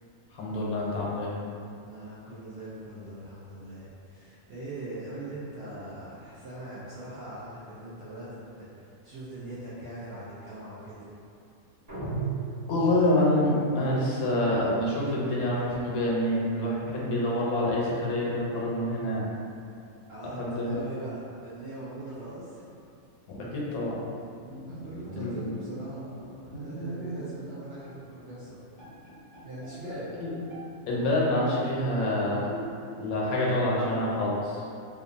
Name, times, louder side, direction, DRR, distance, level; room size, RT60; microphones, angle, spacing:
voice 1, 0.3-1.3 12.7-19.3 20.2-20.8 23.3-24.0 25.2-25.3 29.9-30.3 30.9-32.5 33.0-34.6, left 1 dB, 90° left, -5 dB, 1.1 m, -27 dB
voice 2, 1.8-11.2 20.1-22.6 24.7-28.6 29.4-30.1, right 1 dB, 65° right, -10 dB, 0.6 m, -41 dB
sound 1, 11.9-13.3, right 5 dB, 20° right, 0.6 m, -34 dB
Bowed string instrument, 24.4-27.5 27.8-28.0 28.5-28.6 28.8-30.7 31.0-31.8 32.5-33.1, equal, 35° left, 0.5 m, -41 dB
2.8 x 2.3 x 2.5 m, 2.5 s
omnidirectional pair, 1.5 m